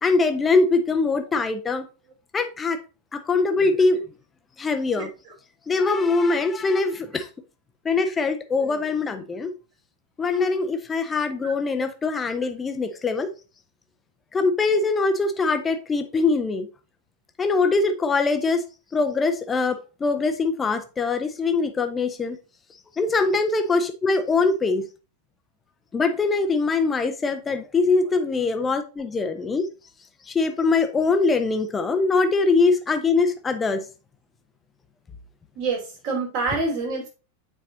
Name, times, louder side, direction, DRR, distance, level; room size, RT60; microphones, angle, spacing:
voice 1, 0.0-1.9 2.3-2.8 3.1-4.0 4.6-5.1 5.7-7.3 7.8-9.5 10.2-13.3 14.3-16.7 17.4-18.7 18.9-22.4 23.0-24.9 25.9-29.7 30.2-33.8, left 3 dB, 15° left, 0.8 m, -22 dB
voice 2, 35.5-37.1, right 3 dB, 45° right, 3.1 m, -27 dB
8.7 x 4.6 x 2.8 m
figure-of-eight pair, 90°, 0 cm